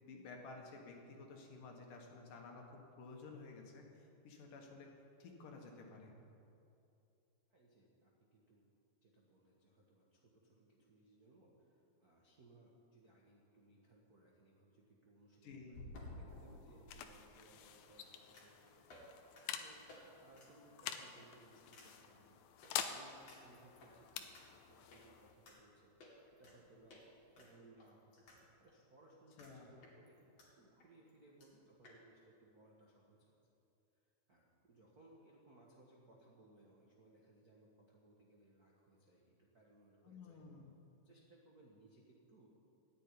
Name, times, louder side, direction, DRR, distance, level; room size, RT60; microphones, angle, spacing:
voice 1, 0.0-4.9 5.2-6.1 15.4-15.8 29.4-29.7 40.0-40.7, left 3 dB, 65° left, 1 dB, 2.9 m, -53 dB
voice 2, 7.5-8.7 9.0-19.0 19.5-25.9 26.4-27.0 27.4-30.2 30.5-33.3 34.3-40.4 41.0-42.5, right 2 dB, 55° right, -3 dB, 1.0 m, -65 dB
sound 1, 13.2-13.3 15.7-17.0 18.3-18.6 18.9-19.1 19.4-19.5 19.9-20.0 20.3-20.5 20.9-21.2 21.7-21.9 22.6-22.7 23.3-23.9 24.3-24.4 24.9-25.0 25.5-25.6 26.0-26.6 26.9-27.0 27.4-28.4 28.7-28.8 29.4-29.5 29.8-30.5 30.8-30.9 31.1-31.2 31.4-31.5 31.8-32.0, left 2 dB, 45° left, 3.3 m, -55 dB
sound 2, 16.1-27.5, left 9 dB, 80° left, 2.5 m, -49 dB
14.0 x 8.4 x 9.7 m, 2.7 s
omnidirectional pair, 4.3 m